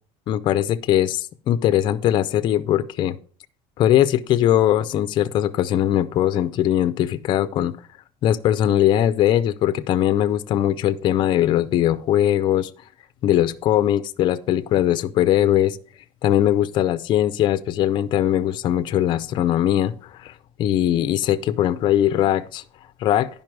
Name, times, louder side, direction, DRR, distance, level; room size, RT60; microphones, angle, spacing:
voice 1, 0.3-3.2 3.8-7.7 8.2-12.7 13.2-15.8 16.2-19.9 20.2-20.3 20.6-22.6 23.0-23.3, left 12 dB, 30° left, 0.4 m, -20 dB
10.5 x 5.3 x 4.6 m
cardioid pair, 170°, 15 cm